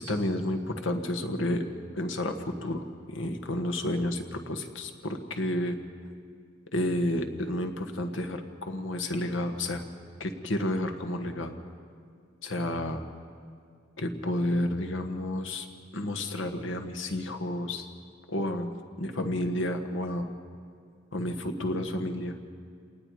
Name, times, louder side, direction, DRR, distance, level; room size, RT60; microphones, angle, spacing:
voice 1, 0.0-1.6 1.9-5.8 6.7-9.8 10.2-11.6 12.4-13.0 14.0-15.7 15.9-17.9 18.3-18.7 19.0-20.3 21.1-22.3, left 1 dB, 70° left, 5 dB, 1.5 m, -31 dB
29.0 x 19.0 x 4.9 m, 2.2 s
head